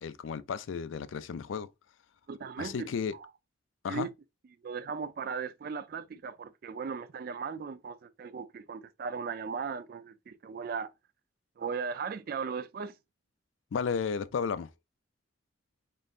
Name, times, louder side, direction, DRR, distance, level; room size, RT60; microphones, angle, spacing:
voice 1, 0.0-1.7 2.6-3.1 3.8-4.1 13.7-14.7, left 6 dB, 80° left, 0.4 m, -33 dB
voice 2, 2.3-3.3 3.9-4.1 4.6-10.9 11.6-12.9, right 5 dB, 50° right, 0.3 m, -37 dB
3.8 x 3.7 x 2.4 m
head